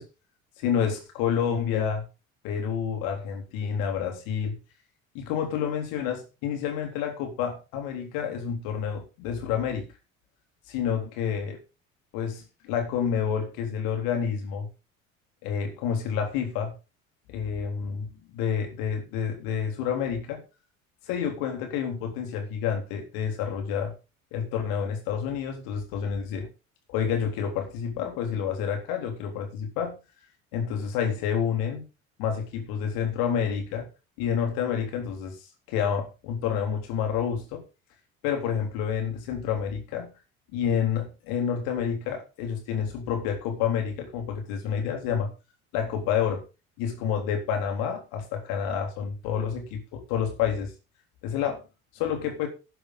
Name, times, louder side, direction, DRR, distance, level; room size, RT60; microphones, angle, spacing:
voice 1, 0.6-2.0 2.4-4.6 5.1-9.9 10.7-11.6 12.1-14.7 15.4-16.7 17.3-18.1 18.3-20.4 21.1-23.9 24.3-26.5 26.9-30.0 30.5-31.9 32.2-33.9 34.2-35.4 35.7-37.6 38.2-40.1 40.5-45.3 45.7-46.4 46.8-50.7 51.2-51.6 51.9-52.5, left 7 dB, 55° left, 5 dB, 3.7 m, -29 dB
11.5 x 10.5 x 4.0 m, 0.31 s
figure-of-eight pair, 60°, 41 cm